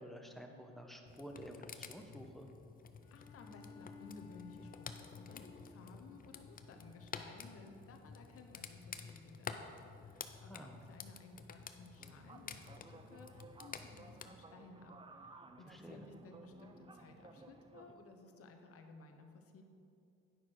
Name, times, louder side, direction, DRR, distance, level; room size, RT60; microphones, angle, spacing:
voice 1, 0.0-2.5 10.4-10.8 15.7-16.0, equal, ahead, 4 dB, 1.0 m, -51 dB
sound 1, 1.1-14.3, left 6 dB, 30° left, 0.6 m, -51 dB
Bowed string instrument, 3.0-7.7, left 4 dB, 80° left, 1.9 m, -59 dB
voice 2, 3.1-19.6, left 3 dB, 50° left, 5 dB, 1.1 m, -57 dB
sound 2, 12.0-17.9, right 3 dB, 15° right, 0.6 m, -57 dB
9.6 x 5.9 x 4.7 m, 2.6 s
supercardioid pair, 80°, 30 cm